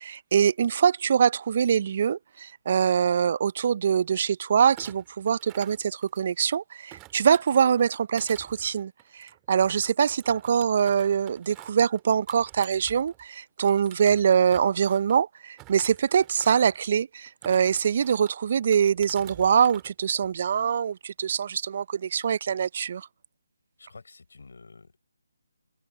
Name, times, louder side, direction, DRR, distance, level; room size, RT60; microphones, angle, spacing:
voice 1, 0.0-23.1, right 7 dB, 45° right, 0.6 m, -24 dB
Thump thud, 4.7-6.5 6.9-13.3 13.6-15.2 15.6-16.8 17.3-18.3 18.7-19.9 20.2-20.6, right 23 dB, 15° right, 2.2 m, -50 dB
voice 2, 23.8-25.0, left 4 dB, 65° left, 4.8 m, -49 dB
figure-of-eight pair, 150°, 0 cm